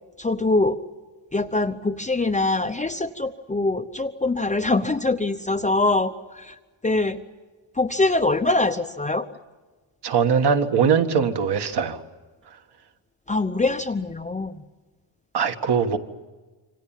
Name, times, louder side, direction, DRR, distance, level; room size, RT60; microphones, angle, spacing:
voice 1, 0.2-0.8 1.3-6.5 6.8-7.2 7.8-9.3 13.3-14.6, left 2 dB, 15° left, 6 dB, 0.8 m, -23 dB
voice 2, 10.0-12.0 15.3-16.0, right 6 dB, 55° right, 6 dB, 1.8 m, -21 dB
27.5 x 25.0 x 7.4 m, 1.3 s
cardioid pair, 150°, 49 cm